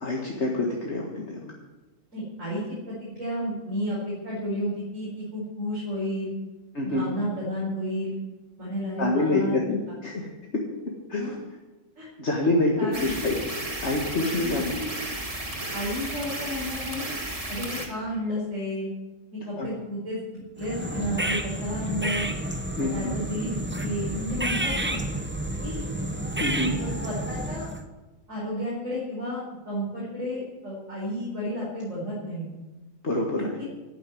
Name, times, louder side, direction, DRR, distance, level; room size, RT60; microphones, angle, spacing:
voice 1, 0.0-1.5 6.7-7.0 9.0-10.3 11.1-11.2 12.2-13.4 13.8-14.6 19.6-19.7 22.8-23.1 26.4-26.7 33.0-33.5, left 2 dB, 60° left, -1 dB, 2.0 m, -26 dB
voice 2, 2.1-4.0 4.2-6.3 6.8-8.2 8.6-9.6 11.2-11.3 12.0-12.1 12.8-13.2 14.4-14.9 15.7-17.1 17.5-18.9 19.3-22.3 22.8-23.5 23.8-25.0 25.6-25.8 26.8-27.7 28.3-32.5 33.6-33.7, equal, 80° right, -7 dB, 5.2 m, -32 dB
sound 1, 12.9-17.9, right 1 dB, 25° right, 1.9 m, -33 dB
sound 2, 20.6-27.9, right 1 dB, 10° right, 0.8 m, -30 dB
12.5 x 9.1 x 9.4 m, 1.1 s
omnidirectional pair, 1.4 m